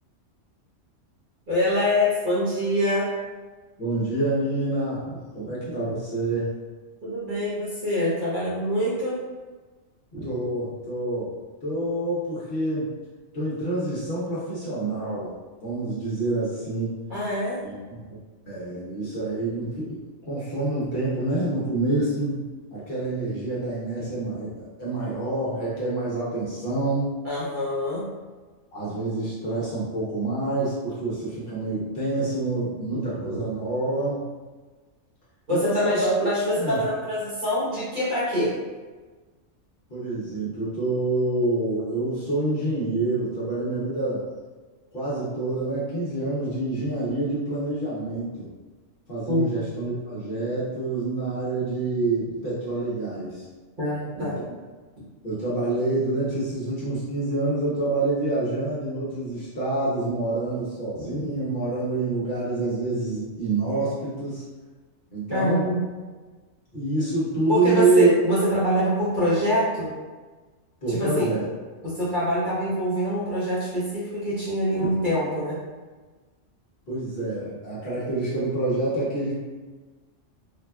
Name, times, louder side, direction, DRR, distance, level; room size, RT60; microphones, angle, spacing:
voice 1, 1.5-3.1 7.0-9.2 17.1-17.6 27.2-28.0 35.5-38.5 49.3-49.5 53.8-54.4 65.3-65.8 67.5-69.9 70.9-71.3 71.8-75.6, equal, 45° right, -9 dB, 0.9 m, -24 dB
voice 2, 3.8-6.5 10.1-11.3 11.6-12.9 13.3-15.3 15.6-17.0 17.6-18.0 18.5-20.0 20.2-22.4 22.7-27.1 28.7-34.2 35.5-36.1 36.6-36.8 39.9-44.2 44.9-48.5 49.1-53.4 54.1-54.3 55.2-64.4 65.1-65.6 66.7-68.1 70.8-71.5 76.9-79.4, right 2 dB, 55° left, -8 dB, 0.9 m, -27 dB
3.4 x 2.2 x 2.2 m, 1.3 s
omnidirectional pair, 1.3 m